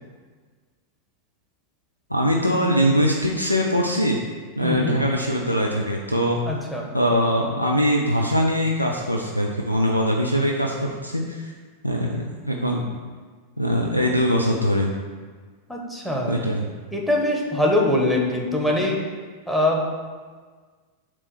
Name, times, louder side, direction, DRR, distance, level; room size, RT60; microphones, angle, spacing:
voice 1, 2.1-4.2 4.6-6.4 6.9-10.7 11.0-11.5 11.8-12.8 13.6-14.9 16.3-16.7, equal, 90° left, 0 dB, 0.6 m, -22 dB
voice 2, 4.6-5.0 6.5-6.9 15.7-16.4 16.9-19.0 19.5-19.8, left 1 dB, 5° left, -1 dB, 1.2 m, -22 dB
7.4 x 3.2 x 6.2 m, 1.5 s
figure-of-eight pair, 90°, 0 cm